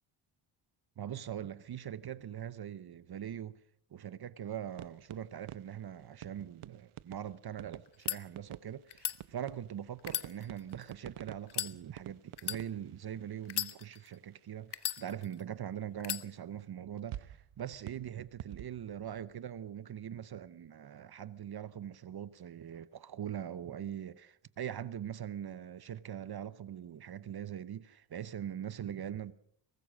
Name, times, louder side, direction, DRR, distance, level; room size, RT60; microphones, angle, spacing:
voice 1, 1.0-3.6 3.9-29.3, right 10 dB, 50° right, 0.8 m, -42 dB
sound 1, 4.7-14.0 14.3-14.4 17.0-19.6, right 13 dB, 80° right, 0.9 m, -50 dB
sound 2, 7.9-8.2 8.9-9.2 10.0-10.9 11.5-11.7 12.4-12.6 13.5-14.1 14.7-15.4 16.0-16.3, left 11 dB, 55° left, 1.1 m, -36 dB
23.0 x 19.0 x 6.3 m
wide cardioid pair, 145°, 49 cm